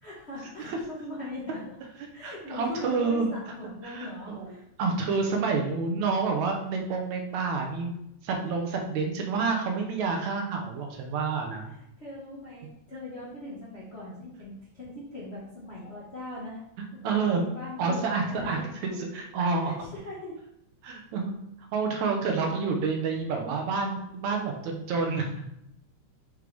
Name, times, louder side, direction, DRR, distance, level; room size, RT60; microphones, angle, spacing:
voice 1, 0.0-1.6 2.1-4.6 11.7-16.6 16.9-19.0 19.6-20.4, left 1 dB, 50° left, -7 dB, 0.7 m, -40 dB
voice 2, 2.2-3.3 3.6-4.5 4.8-7.9 8.2-11.7 17.0-17.4 17.8-18.6 19.0-19.9 20.8-21.3 21.7-25.5, right 4 dB, 75° right, 2 dB, 2.2 m, -28 dB
6.4 x 5.1 x 3.4 m, 0.78 s
omnidirectional pair, 3.5 m